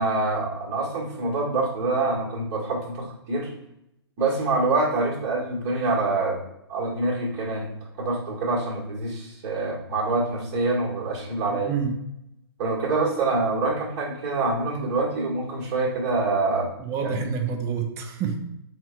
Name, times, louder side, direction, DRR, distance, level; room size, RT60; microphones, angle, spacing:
voice 1, 0.0-3.5 4.2-6.4 6.7-7.7 8.0-11.7 12.6-16.7 17.0-17.2, right 3 dB, 40° right, -4 dB, 1.4 m, -25 dB
voice 2, 11.5-11.9 16.8-18.4, right 6 dB, 20° right, 3 dB, 0.5 m, -28 dB
4.2 x 2.2 x 4.4 m, 0.82 s
hypercardioid pair, 130°, 14 cm